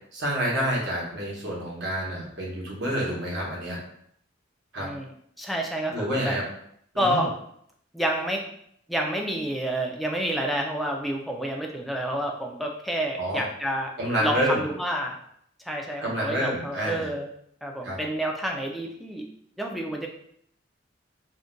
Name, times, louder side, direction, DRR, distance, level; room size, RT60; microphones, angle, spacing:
voice 1, 0.1-3.8 4.7-4.9 5.9-6.4 6.9-7.3 13.2-13.4 14.0-14.6 16.0-17.1 17.8-18.0, equal, 65° right, -3 dB, 1.0 m, -28 dB
voice 2, 5.4-6.4 7.0-7.3 7.9-8.4 8.9-13.9 14.2-15.2 15.7-17.3 17.6-19.2 19.6-20.1, right 1 dB, ahead, 0 dB, 0.3 m, -29 dB
2.5 x 2.1 x 3.7 m, 0.69 s
head